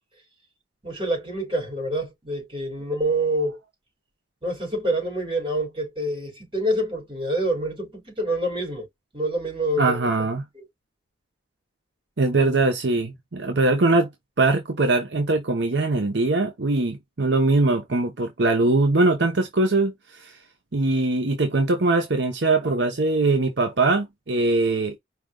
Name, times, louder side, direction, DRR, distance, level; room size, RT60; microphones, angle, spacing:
voice 1, 0.8-3.6 4.4-8.9 9.1-10.1, right 1 dB, 30° right, 3.7 m, -26 dB
voice 2, 9.8-10.4 12.2-14.1 14.4-20.4 20.7-25.0, right 2 dB, 70° right, 0.8 m, -22 dB
4.9 x 2.8 x 3.7 m
head